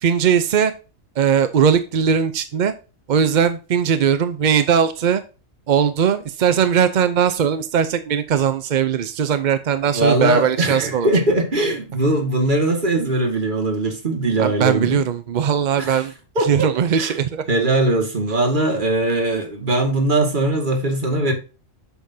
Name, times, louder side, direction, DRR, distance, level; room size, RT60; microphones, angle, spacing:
voice 1, 0.0-0.7 1.2-2.7 3.1-5.2 5.7-11.1 14.4-16.1 16.4-17.4, right 7 dB, 55° right, 0.5 m, -19 dB
voice 2, 9.9-15.0 15.8-16.0 16.4-16.7 17.0-17.1 17.5-21.3, right 2 dB, 35° right, 2.0 m, -20 dB
8.0 x 6.3 x 2.7 m
omnidirectional pair, 1.4 m